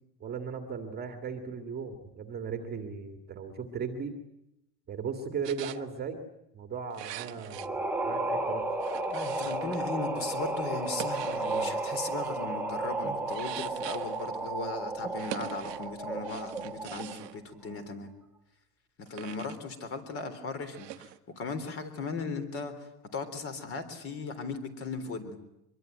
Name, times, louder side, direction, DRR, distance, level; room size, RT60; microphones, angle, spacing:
voice 1, 0.2-4.1 4.9-6.2 6.5-8.6, right 6 dB, 20° right, 6 dB, 2.2 m, -37 dB
sound 1, 5.4-5.8 6.9-7.7 8.8-9.8 10.8-11.8 13.3-14.3 15.2-15.9 16.2-17.4 19.1-19.6 20.7-21.2, right 15 dB, 90° right, 1.5 m, -43 dB
sound 2, 7.5-17.3, right 2 dB, 5° right, 1.5 m, -33 dB
voice 2, 9.1-18.1 19.0-25.4, left 4 dB, 30° left, 10 dB, 3.8 m, -37 dB
25.0 x 22.5 x 9.3 m, 0.86 s
supercardioid pair, 155°, 47 cm